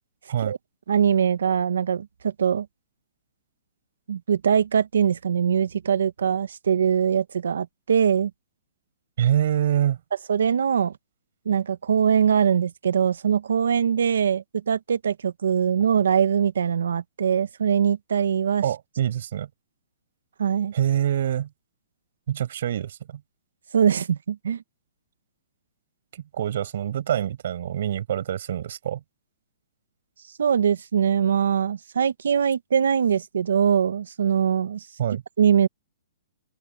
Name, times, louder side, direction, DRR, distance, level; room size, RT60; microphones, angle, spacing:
voice 1, 0.9-2.7 4.1-8.3 10.3-10.9 11.4-18.6 20.4-20.7 23.7-24.6 30.4-34.9 35.4-35.7, right 8 dB, 90° right, 1.1 m, -22 dB
voice 2, 9.2-10.0 18.6-19.5 20.7-21.5 22.3-23.2 26.1-29.0 35.0-35.2, right 10 dB, 50° right, 5.4 m, -25 dB
open air
hypercardioid pair, 175°, 0 cm